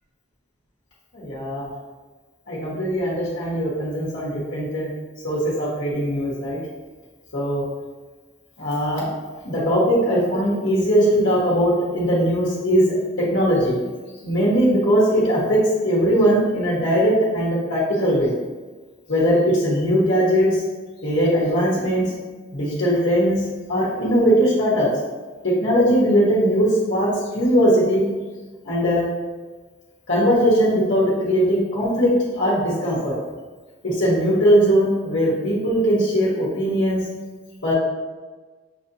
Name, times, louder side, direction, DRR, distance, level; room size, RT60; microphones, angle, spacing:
voice 1, 1.1-1.7 2.5-4.9 5.2-6.6 7.3-7.6 8.6-9.1 9.4-12.8 13.3-13.8 14.2-18.3 19.1-20.6 21.0-22.0 22.5-23.4 23.7-24.9 25.4-28.0 28.6-29.1 30.1-33.1 33.8-37.0 37.6-37.7, equal, 70° left, -8 dB, 1.1 m, -20 dB
6.5 x 2.8 x 2.6 m, 1.3 s
head